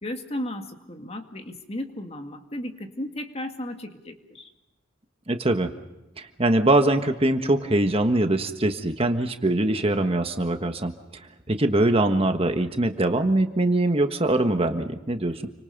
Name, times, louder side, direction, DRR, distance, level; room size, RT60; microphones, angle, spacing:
voice 1, 0.0-4.5, left 1 dB, 30° left, 5 dB, 2.1 m, -35 dB
voice 2, 5.3-5.7 6.2-10.9 11.5-15.5, right 1 dB, 30° right, 6 dB, 1.4 m, -22 dB
30.0 x 25.5 x 5.4 m, 0.99 s
head